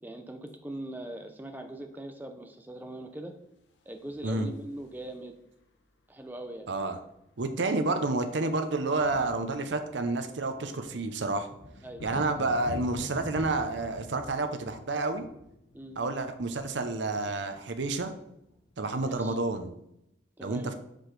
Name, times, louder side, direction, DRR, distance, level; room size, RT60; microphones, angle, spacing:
voice 1, 0.0-3.3 3.9-5.3 6.1-6.7 11.8-12.1 15.7-16.0 18.9-19.4 20.4-20.7, right 1 dB, 10° right, 5 dB, 0.5 m, -41 dB
sound 1, 3.8-5.3 6.6-6.7 6.9-7.1 7.4-19.5, left 2 dB, 75° left, 0.7 m, -47 dB
voice 2, 6.7-7.0 7.4-11.5 12.0-15.3 16.0-18.1 18.8-19.7 20.4-20.7, right 2 dB, 75° right, 8 dB, 0.6 m, -29 dB
5.8 x 5.0 x 3.2 m, 0.79 s
head